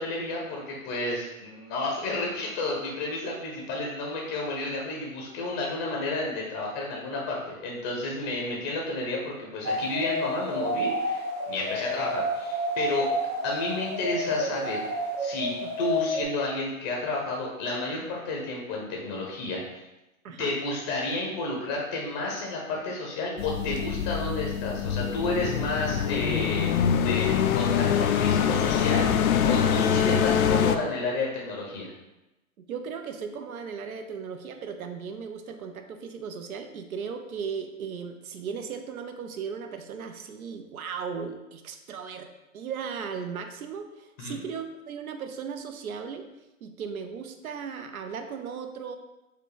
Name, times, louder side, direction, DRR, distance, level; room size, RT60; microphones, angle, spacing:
voice 1, 0.0-13.1 13.4-14.8 15.2-15.5 15.8-19.8 20.4-26.7 27.0-31.9 44.2-44.4, left 2 dB, 25° left, -1 dB, 0.6 m, -31 dB
sound 1, 9.6-16.2, equal, 20° right, 0.6 m, -30 dB
voice 2, 20.2-20.6 32.7-42.3 42.5-46.2 46.6-49.0, right 6 dB, 90° right, 7 dB, 0.7 m, -36 dB
sound 2, 23.4-30.8, left 8 dB, 85° left, 0.6 m, -24 dB
4.8 x 2.3 x 4.8 m, 0.98 s
hypercardioid pair, 145°, 42 cm